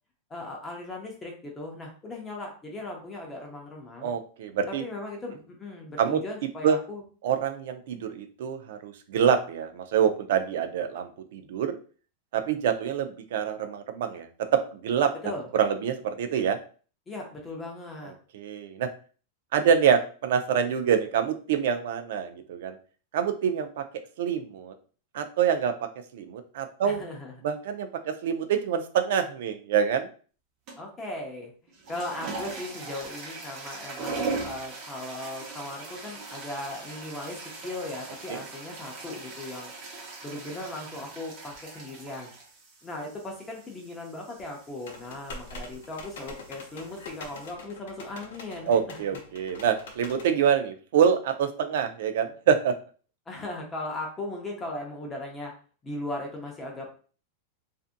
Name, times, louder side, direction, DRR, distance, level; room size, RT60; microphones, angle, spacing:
voice 1, 0.3-4.1 4.7-7.0 15.2-15.5 17.1-18.1 26.8-27.3 30.8-39.7 40.2-42.3 42.8-49.0 53.3-55.5 55.8-56.9, left 2 dB, 15° left, 0 dB, 0.6 m, -38 dB
voice 2, 4.0-4.8 6.0-6.2 6.6-6.8 7.2-11.8 12.3-15.1 15.5-16.6 18.3-18.9 19.5-22.8 23.1-23.8 24.2-24.7 25.1-25.7 26.1-27.0 27.4-30.1 38.3-38.4 48.7-52.7, right 8 dB, 70° right, 8 dB, 0.4 m, -26 dB
sound 1, 30.7-31.0 31.7-47.5, right 3 dB, 40° right, 0.8 m, -40 dB
sound 2, 44.9-50.3, left 2 dB, 85° left, 0.7 m, -44 dB
2.6 x 2.5 x 2.5 m, 0.39 s
supercardioid pair, 150°, 0 cm